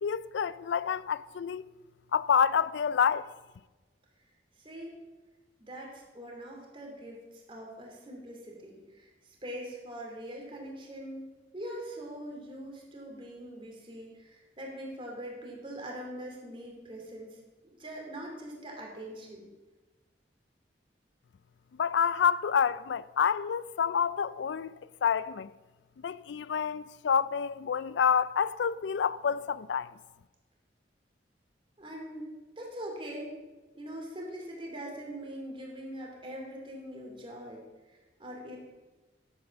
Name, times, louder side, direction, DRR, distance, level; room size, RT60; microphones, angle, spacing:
voice 1, 0.0-1.6 2.1-3.3 21.8-24.7 25.0-25.5 26.0-29.9, left 7 dB, 90° left, 0.4 m, -28 dB
voice 2, 4.6-5.0 5.6-19.5 31.8-33.3 33.7-37.6 37.9-38.6, right 1 dB, 30° right, 2.7 m, -42 dB
10.5 x 8.6 x 7.0 m
head